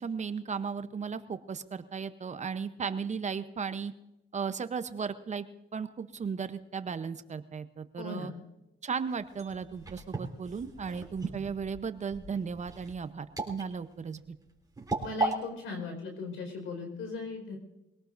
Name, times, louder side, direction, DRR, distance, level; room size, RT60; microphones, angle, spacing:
voice 1, 0.0-3.9 4.3-5.5 5.7-8.3 8.8-14.3, right 6 dB, 35° right, 11 dB, 0.8 m, -36 dB
voice 2, 8.0-8.4 15.0-17.6, left 3 dB, 90° left, 3 dB, 4.8 m, -38 dB
sound 1, 9.1-15.4, right 2 dB, 20° right, 3.9 m, -36 dB
24.0 x 18.0 x 2.6 m, 0.94 s
cardioid pair, 90°, 20 cm